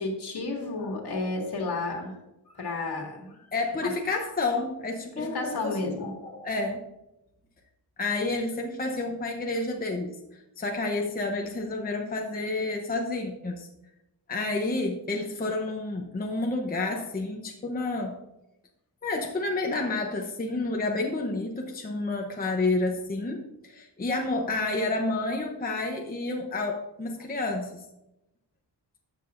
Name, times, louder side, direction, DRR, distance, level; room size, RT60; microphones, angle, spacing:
voice 1, 0.0-2.1 2.5-3.4 3.8-3.9 5.2-6.5, left 3 dB, 65° left, 1 dB, 2.0 m, -32 dB
voice 2, 3.5-5.6 5.8-6.0 6.4-6.9 8.0-13.7 14.3-18.2 19.0-27.8, left 2 dB, 20° left, 1 dB, 0.8 m, -30 dB
12.5 x 7.6 x 2.6 m, 0.91 s
wide cardioid pair, 170°, 43 cm